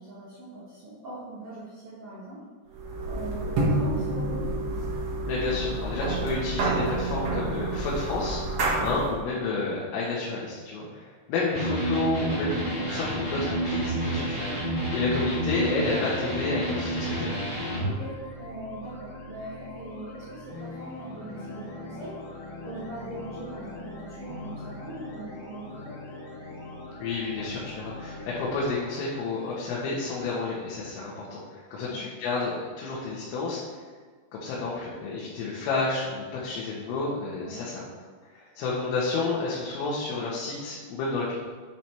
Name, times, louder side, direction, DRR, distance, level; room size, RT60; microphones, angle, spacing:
voice 1, 0.0-2.4 3.0-4.5 8.8-9.0 17.8-25.9 31.7-32.0 37.4-37.6, right 2 dB, 75° right, -9 dB, 1.3 m, -41 dB
sound 1, 2.7-9.2, right 2 dB, 60° right, 1.5 m, -28 dB
voice 2, 5.3-14.7 14.9-17.4 27.0-33.6 34.3-37.8 38.3-41.4, left 3 dB, 90° left, -6 dB, 4.0 m, -30 dB
Electric guitar, 11.5-17.9, right 1 dB, 20° left, 0.8 m, -29 dB
sound 2, 12.0-29.6, left 2 dB, 70° left, 4.0 m, -42 dB
9.1 x 7.4 x 3.4 m, 1.5 s
omnidirectional pair, 5.7 m